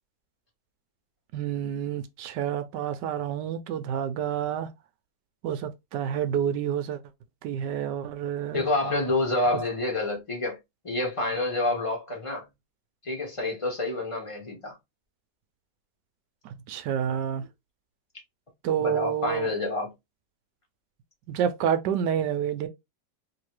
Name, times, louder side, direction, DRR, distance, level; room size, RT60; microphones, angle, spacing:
voice 1, 1.3-4.7 5.4-7.0 7.4-8.6 16.4-17.4 18.6-19.5 21.3-22.7, right 9 dB, 75° right, 1.1 m, -29 dB
voice 2, 8.5-10.6 10.8-12.5 13.0-14.8 18.8-19.9, left 2 dB, 20° left, 1.1 m, -28 dB
3.1 x 2.9 x 3.1 m
omnidirectional pair, 2.0 m